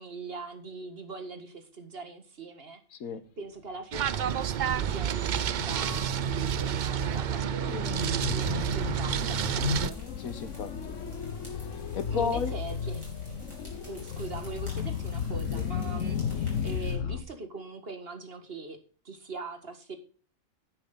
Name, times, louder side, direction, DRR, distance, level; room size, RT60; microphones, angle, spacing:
voice 1, 0.0-2.8 3.4-10.0 12.1-13.0 13.8-18.8 19.0-20.0, right 3 dB, 45° right, 6 dB, 1.8 m, -41 dB
voice 2, 2.9-3.2 7.7-7.9 10.2-11.0 11.6-12.6 15.5-15.6, left 6 dB, 85° left, 12 dB, 1.5 m, -34 dB
sound 1, 3.9-9.9, right 9 dB, 90° right, 0.4 m, -29 dB
sound 2, 4.1-17.2, left 7 dB, 65° left, 1.1 m, -35 dB
sound 3, 9.6-16.9, equal, 20° right, 5.1 m, -48 dB
10.5 x 8.8 x 3.8 m, 0.40 s
omnidirectional pair, 1.4 m